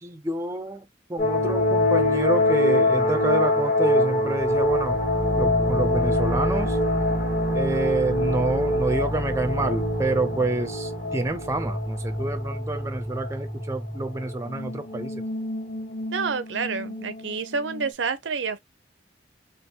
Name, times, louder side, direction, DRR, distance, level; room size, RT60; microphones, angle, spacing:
voice 1, 0.0-5.0 5.4-6.8 7.5-15.2, right 2 dB, 15° right, 0.4 m, -28 dB
sound 1, 1.2-17.9, left 1 dB, 45° left, 1.4 m, -25 dB
voice 2, 16.1-18.6, right 5 dB, 85° right, 0.6 m, -29 dB
3.4 x 3.0 x 2.8 m
head